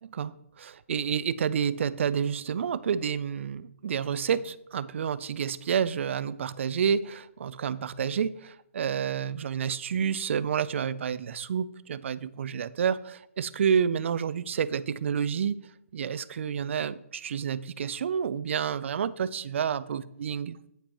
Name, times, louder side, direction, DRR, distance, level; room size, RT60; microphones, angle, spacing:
voice 1, 0.0-15.7 15.9-20.6, right 7 dB, 60° right, 0.3 m, -29 dB
9.1 x 4.3 x 2.9 m
hypercardioid pair, 150°, 8 cm